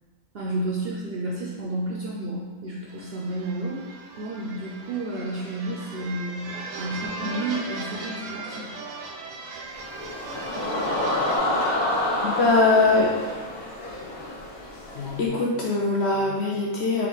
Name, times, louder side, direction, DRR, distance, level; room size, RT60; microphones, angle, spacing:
voice 1, 0.3-3.9 4.2-6.5 6.8-8.7, right 1 dB, 60° right, -4 dB, 0.7 m, -31 dB
sound 1, 2.9-11.4, right 3 dB, 90° right, 1.1 m, -38 dB
sound 2, 9.7-15.3, left 1 dB, 80° left, 1.6 m, -28 dB
voice 2, 12.2-13.2 14.9-17.1, left 3 dB, 60° left, -4 dB, 0.7 m, -22 dB
4.4 x 2.4 x 3.9 m, 1.5 s
omnidirectional pair, 1.5 m